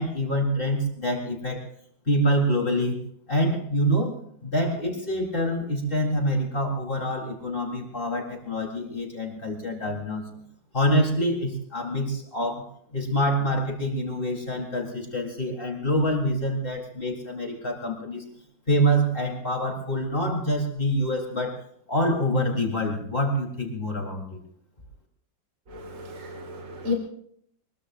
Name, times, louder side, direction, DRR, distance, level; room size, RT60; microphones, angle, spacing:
voice 1, 0.0-1.7 2.1-3.0 3.3-10.2 10.7-12.7 12.9-18.2 18.7-21.6 21.9-24.4, equal, 30° left, 0 dB, 4.2 m, -26 dB
voice 2, 25.7-26.9, left 3 dB, 45° right, 1 dB, 2.6 m, -32 dB
24.0 x 22.5 x 2.6 m, 0.66 s
omnidirectional pair, 2.0 m